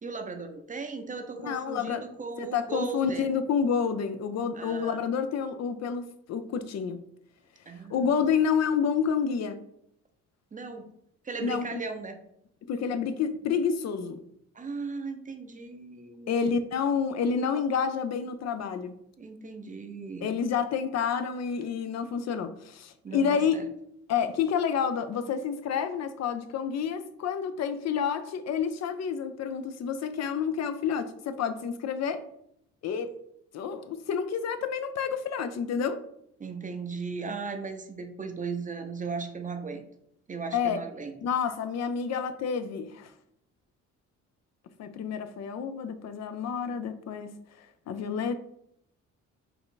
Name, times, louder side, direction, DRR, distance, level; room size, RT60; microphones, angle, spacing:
voice 1, 0.0-3.3 4.5-5.0 7.7-8.1 10.5-10.9 11.2-12.2 14.5-16.5 19.2-20.3 23.0-23.6 36.4-39.8 40.3-41.1, right 4 dB, 25° right, 6 dB, 0.6 m, -37 dB
voice 2, 1.4-2.0 2.4-7.0 7.9-9.6 11.4-11.8 12.7-14.2 16.3-19.0 20.2-23.6 24.1-32.2 32.8-33.1 33.5-36.0 40.5-40.8 41.2-43.1 44.8-48.3, left 6 dB, 60° left, 10 dB, 0.5 m, -29 dB
4.7 x 2.5 x 3.8 m, 0.74 s
cardioid pair, 90°, 30 cm